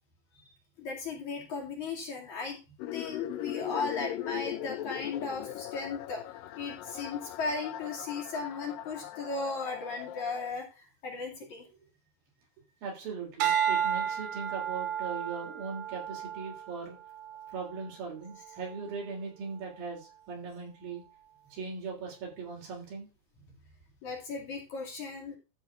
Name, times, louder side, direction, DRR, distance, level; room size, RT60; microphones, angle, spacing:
voice 1, 0.8-2.6 2.9-6.2 6.6-11.7 24.0-25.4, left 4 dB, 50° left, 0 dB, 3.7 m, -36 dB
sound 1, 2.8-10.5, left 12 dB, 75° left, 2.2 m, -39 dB
voice 2, 12.8-17.0 17.5-21.0 21.5-23.1, right 5 dB, 65° right, -1 dB, 5.2 m, -39 dB
sound 2, 13.4-17.8 18.4-18.8, right 9 dB, 85° right, 3.7 m, -32 dB
13.5 x 4.5 x 5.7 m, 0.29 s
omnidirectional pair, 4.5 m